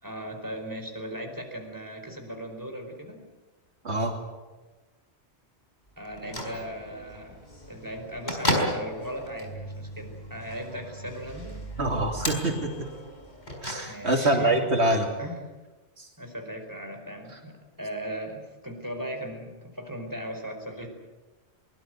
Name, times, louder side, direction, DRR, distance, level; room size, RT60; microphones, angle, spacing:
voice 1, 0.0-3.2 6.0-7.4 7.7-11.7 13.9-14.7 15.2-15.4 16.2-20.9, equal, 15° right, 3 dB, 4.7 m, -37 dB
Bell / Microwave oven, 6.0-14.3, equal, 40° left, 4.6 m, -34 dB
voice 2, 11.8-12.7 13.6-15.1 16.0-16.1, right 1 dB, 70° right, 2 dB, 3.0 m, -25 dB
23.5 x 20.5 x 8.1 m, 1.2 s
omnidirectional pair, 1.1 m